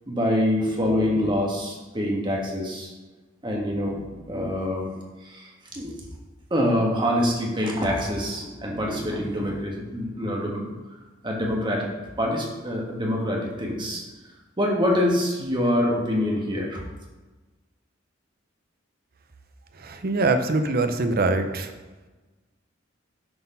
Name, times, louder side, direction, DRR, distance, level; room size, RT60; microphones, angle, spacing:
voice 1, 0.1-2.9 3.4-4.9 5.2-5.9 6.5-10.6 11.2-11.9 12.2-14.0 14.6-16.8, left 1 dB, 25° right, -1 dB, 1.4 m, -25 dB
voice 2, 19.8-21.7, right 3 dB, 50° right, 7 dB, 0.6 m, -23 dB
7.8 x 4.3 x 5.6 m, 1.2 s
head